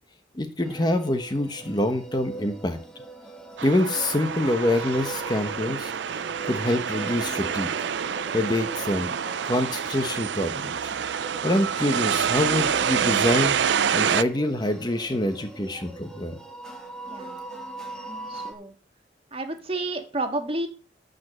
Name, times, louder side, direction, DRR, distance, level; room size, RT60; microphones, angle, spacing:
voice 1, 0.3-2.8 3.6-5.9 6.5-7.7 8.3-9.1 9.5-10.9 11.4-16.4, left 1 dB, 20° left, 8 dB, 1.0 m, -26 dB
sound 1, 0.6-18.5, right 3 dB, 5° left, 2.0 m, -41 dB
sound 2, 3.6-14.2, right 7 dB, 65° right, 0.4 m, -27 dB
voice 2, 17.1-17.4 18.3-18.7 19.3-20.7, right 2 dB, 30° right, 5 dB, 1.7 m, -30 dB
12.5 x 5.2 x 7.5 m, 0.39 s
head